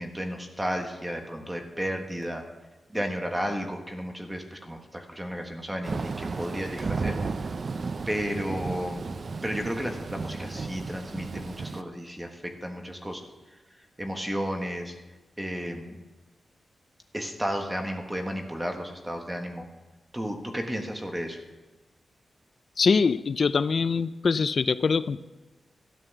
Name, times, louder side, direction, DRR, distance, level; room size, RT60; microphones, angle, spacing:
voice 1, 0.0-2.4 2.9-7.4 8.1-9.0 9.4-13.2 13.5-14.9 15.4-16.0 17.1-19.6 20.1-21.4, equal, 10° right, 3 dB, 1.5 m, -33 dB
Thunder / Rain, 5.8-11.8, right 4 dB, 45° right, 0.5 m, -33 dB
voice 2, 22.8-25.2, left 5 dB, 50° left, 15 dB, 0.4 m, -23 dB
13.0 x 9.0 x 7.0 m, 1.2 s
wide cardioid pair, 125°, 0 cm